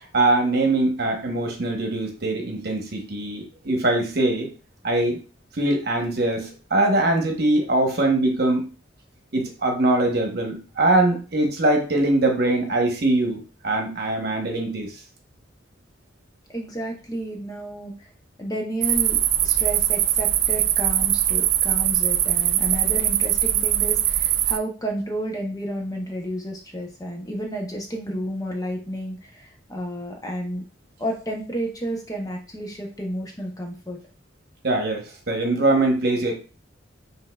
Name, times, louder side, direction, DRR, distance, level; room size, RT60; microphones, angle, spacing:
voice 1, 0.1-4.5 4.8-5.2 5.6-8.7 9.3-13.4 13.6-14.9 34.6-36.3, right 2 dB, 55° right, 2 dB, 1.0 m, -22 dB
voice 2, 16.5-18.1 18.4-30.6 31.0-34.0, right 1 dB, 20° left, 1 dB, 0.7 m, -31 dB
sound 1, 18.8-24.6, right 12 dB, 85° right, 0.4 m, -21 dB
5.4 x 3.3 x 2.3 m, 0.35 s
head